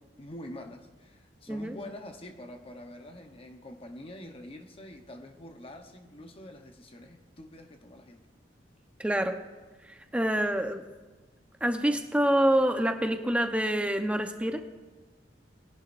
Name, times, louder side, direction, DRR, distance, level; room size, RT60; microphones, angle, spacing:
voice 1, 0.0-8.3, left 1 dB, 35° left, 4 dB, 0.9 m, -46 dB
voice 2, 9.0-9.4 9.8-10.8 11.6-14.6, right 1 dB, 5° right, 5 dB, 0.9 m, -26 dB
21.0 x 11.0 x 2.6 m, 1.2 s
head